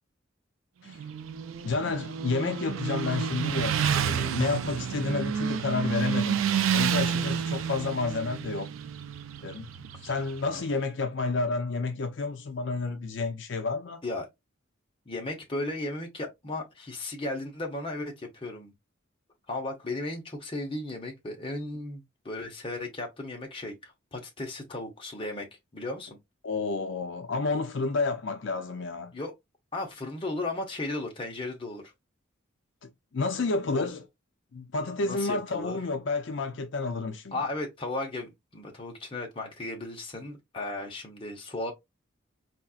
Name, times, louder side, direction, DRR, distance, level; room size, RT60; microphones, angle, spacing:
Motorcycle, 0.9-10.7, right 7 dB, 80° right, 0.4 m, -30 dB
voice 1, 1.6-6.4 6.7-8.8 9.4-9.7 10.0-14.0 26.4-29.1 32.8-34.0 34.5-37.4, left 3 dB, 60° left, 0.5 m, -30 dB
voice 2, 15.1-18.7 19.5-25.5 25.7-26.2 29.1-29.3 29.7-31.9 33.7-33.9 35.0-35.8 37.3-41.7, left 2 dB, 25° left, 0.8 m, -35 dB
4.1 x 2.4 x 2.4 m
head